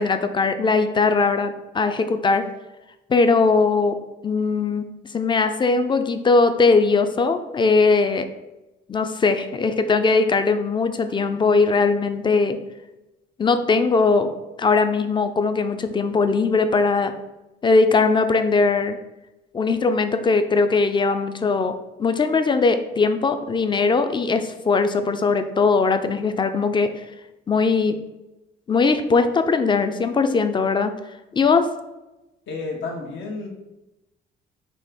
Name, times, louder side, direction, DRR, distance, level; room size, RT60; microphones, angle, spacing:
voice 1, 0.0-2.5 3.1-4.0 4.2-4.9 5.1-8.3 8.9-12.6 13.4-14.3 14.6-17.1 17.6-19.0 19.5-21.7 22.0-27.0 27.5-28.0 28.7-30.9 31.3-31.7, left 4 dB, 25° left, 9 dB, 0.4 m, -20 dB
voice 2, 32.5-33.5, left 3 dB, 75° left, 0 dB, 1.0 m, -31 dB
4.1 x 2.9 x 3.5 m, 0.99 s
cardioid pair, 90°, 20 cm